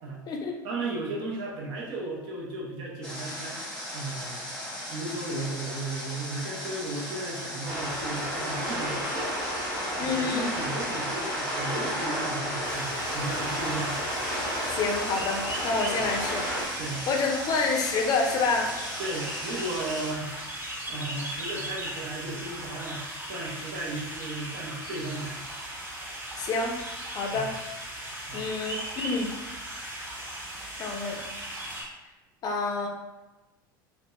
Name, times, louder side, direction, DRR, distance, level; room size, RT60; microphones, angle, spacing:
voice 1, 0.6-3.6 3.9-4.5 4.9-9.1 10.0-14.0 16.8-17.0 19.0-20.3 20.9-25.4 27.3-27.4 28.3-28.5, right 2 dB, 55° right, -3 dB, 0.6 m, -35 dB
Water, 3.0-20.1, equal, 10° left, 0.9 m, -38 dB
sound 1, 7.6-16.6, equal, 80° right, 1.0 m, -32 dB
voice 2, 10.0-10.5 14.7-16.5 17.1-18.7 26.4-26.8 27.1-27.5 28.3-29.3 30.8-31.2 32.4-32.9, left 4 dB, 35° left, 1 dB, 0.5 m, -28 dB
sound 2, 12.6-31.8, right 1 dB, 15° right, 1.0 m, -38 dB
2.6 x 2.1 x 2.3 m, 1.1 s
figure-of-eight pair, 75°, 11 cm